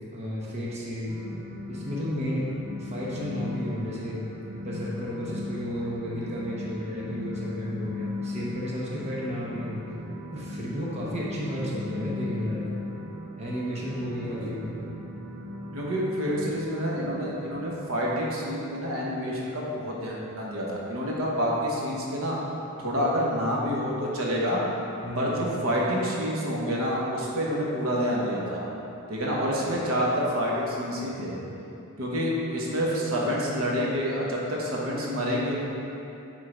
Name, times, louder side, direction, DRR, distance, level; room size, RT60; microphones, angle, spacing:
voice 1, 0.1-1.2 1.7-2.5 2.8-4.2 4.6-9.8 10.3-12.6 13.4-14.8 25.0-25.4, equal, 30° right, -6 dB, 1.0 m, -33 dB
sound 1, 1.1-17.5, left 2 dB, 60° right, 0.9 m, -37 dB
voice 2, 15.7-22.4 22.8-24.6 25.1-28.7 29.1-31.4 32.0-35.6, equal, 80° right, -4 dB, 1.2 m, -28 dB
7.7 x 3.8 x 5.0 m, 2.9 s
head